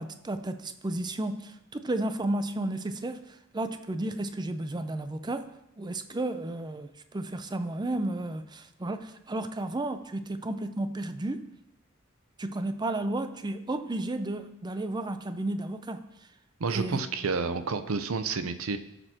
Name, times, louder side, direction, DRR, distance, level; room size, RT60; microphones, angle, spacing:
voice 1, 0.0-5.5 5.8-11.4 12.4-16.1 16.7-17.1, right 2 dB, 20° right, 9 dB, 0.5 m, -33 dB
voice 2, 16.6-18.8, right 4 dB, 70° right, 10 dB, 0.6 m, -30 dB
16.5 x 6.8 x 2.9 m, 0.87 s
head